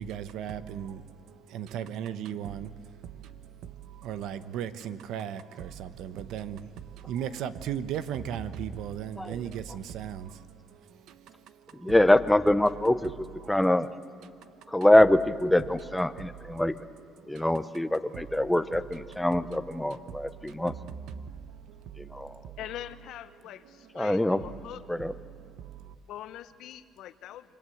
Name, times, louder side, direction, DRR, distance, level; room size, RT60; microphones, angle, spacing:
voice 1, 0.0-12.0 12.7-14.9 15.6-22.9 23.3-25.9, right 9 dB, 75° right, 1.1 m, -39 dB
voice 2, 11.8-13.1 13.5-13.9 14.7-16.7 17.3-20.7 22.1-22.3 24.0-24.4 24.9-25.1, left 1 dB, 5° left, 0.8 m, -24 dB
voice 3, 22.6-23.6 23.9-24.8 26.1-27.4, left 12 dB, 70° left, 1.1 m, -42 dB
28.0 x 24.0 x 7.9 m
cardioid pair, 135°, 0 cm